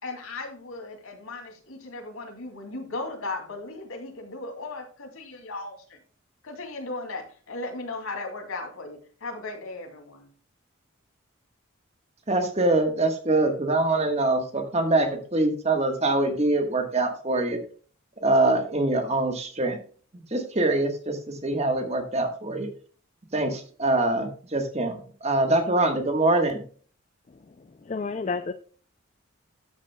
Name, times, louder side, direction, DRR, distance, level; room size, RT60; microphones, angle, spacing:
voice 1, 0.0-6.0 6.4-10.3, left 2 dB, 85° left, 3 dB, 2.5 m, -36 dB
voice 2, 12.3-17.6 18.2-19.8 20.3-21.2 21.4-22.7 23.3-25.0 25.2-26.6, right 2 dB, 30° right, 5 dB, 1.4 m, -24 dB
voice 3, 27.8-28.5, left 4 dB, 35° left, 9 dB, 0.4 m, -30 dB
12.5 x 8.4 x 2.2 m, 0.42 s
head